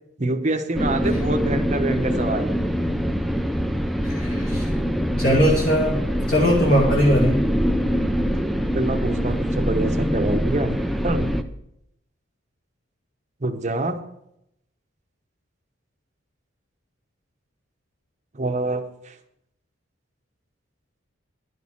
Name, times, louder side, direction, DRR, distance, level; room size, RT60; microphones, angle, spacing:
voice 1, 0.2-2.6 8.7-10.8 11.0-11.3 13.4-14.0 18.3-19.2, right 2 dB, 35° right, 6 dB, 0.9 m, -26 dB
sound 1, 0.7-11.4, equal, ahead, 0.4 m, -24 dB
voice 2, 4.0-4.7 5.2-7.4, equal, 40° left, -4 dB, 2.0 m, -20 dB
11.5 x 6.4 x 7.2 m, 0.78 s
head